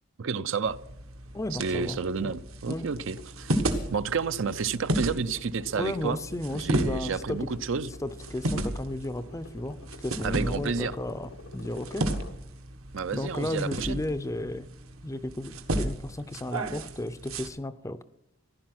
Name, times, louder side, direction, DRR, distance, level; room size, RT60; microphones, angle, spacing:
voice 1, 0.2-0.8 1.6-3.5 3.9-6.2 6.5-7.9 10.2-11.0 12.9-14.0, right 5 dB, 60° right, 0.5 m, -30 dB
sound 1, 0.6-17.5, right 1 dB, 75° right, 1.4 m, -34 dB
voice 2, 1.3-2.3 2.7-2.9 5.7-7.5 8.0-12.1 13.1-14.7 15.0-18.0, left 1 dB, 15° left, 0.5 m, -34 dB
sound 2, 2.9-13.2, left 3 dB, 80° left, 1.3 m, -50 dB
15.0 x 11.0 x 6.0 m
head